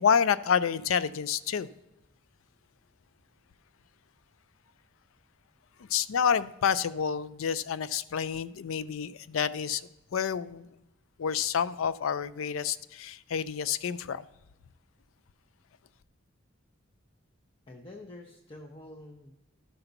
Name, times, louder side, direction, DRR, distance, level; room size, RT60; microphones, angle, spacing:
voice 1, 0.0-1.7 5.9-9.8 10.1-10.7 11.2-14.2, left 7 dB, 85° left, 0.4 m, -28 dB
voice 2, 17.7-19.3, left 1 dB, 25° left, 0.7 m, -47 dB
12.5 x 5.8 x 3.9 m
head